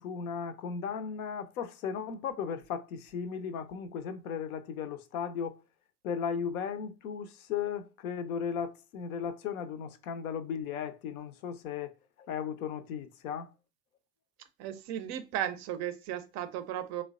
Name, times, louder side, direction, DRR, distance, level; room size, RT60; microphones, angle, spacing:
voice 1, 0.0-5.6 6.0-11.9 12.2-13.5, left 7 dB, 70° left, 0.5 m, -36 dB
voice 2, 14.6-17.0, right 11 dB, 40° right, 0.5 m, -35 dB
3.2 x 2.1 x 2.3 m
figure-of-eight pair, 65°, 45 cm